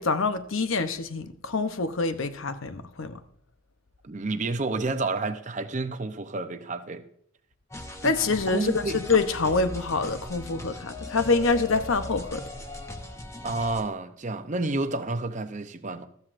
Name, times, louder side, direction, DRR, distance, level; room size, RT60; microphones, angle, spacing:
voice 1, 0.0-3.2 8.0-12.4, left 3 dB, 70° left, 0.8 m, -26 dB
voice 2, 4.0-7.0 8.0-8.1 8.5-9.0 13.4-16.1, right 3 dB, 35° right, 0.7 m, -30 dB
sound 1, 7.7-13.8, left 1 dB, 15° left, 0.9 m, -39 dB
13.5 x 13.0 x 2.5 m
head